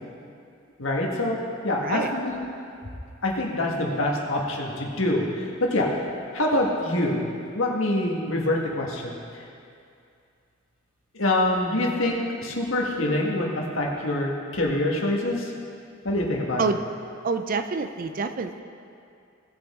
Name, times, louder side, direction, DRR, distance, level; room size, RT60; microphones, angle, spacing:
voice 1, 0.8-1.4 1.6-2.4 3.2-5.9 6.3-7.3 7.5-9.4 11.1-15.5 16.0-16.7, left 1 dB, 75° left, -1 dB, 1.6 m, -25 dB
voice 2, 17.2-18.6, right 4 dB, 45° right, 8 dB, 0.5 m, -27 dB
18.0 x 6.2 x 3.7 m, 2.4 s
head